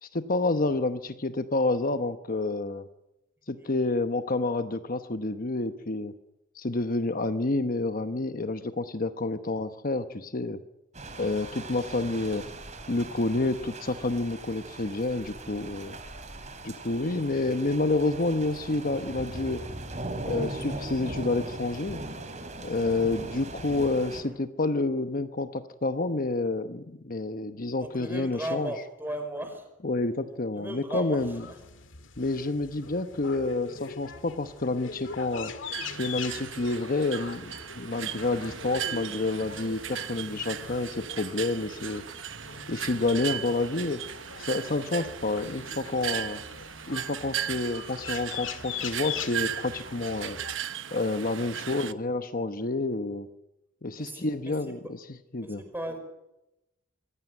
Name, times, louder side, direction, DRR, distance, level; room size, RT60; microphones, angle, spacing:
voice 1, 0.0-2.9 3.5-6.1 6.5-10.6 11.2-12.5 12.9-16.0 16.6-19.6 20.2-22.0 22.6-28.7 29.8-31.4 32.2-35.5 36.0-42.0 42.7-44.0 44.4-46.4 46.9-50.4 50.9-53.3 53.8-55.0 55.3-55.6, left 2 dB, 45° left, 9 dB, 1.0 m, -29 dB
sound 1, 10.9-24.2, right 2 dB, 35° right, 3.6 m, -39 dB
voice 2, 27.8-29.7 30.5-31.6 44.9-45.1 51.7-52.0 54.0-54.6 54.8-54.9 55.4-56.0, right 1 dB, 10° right, 6 dB, 5.4 m, -37 dB
sound 2, 31.2-50.5, left 6 dB, 70° left, 2.0 m, -42 dB
sound 3, 35.7-51.9, right 10 dB, 70° right, 1.0 m, -37 dB
25.0 x 17.0 x 9.2 m, 0.91 s
head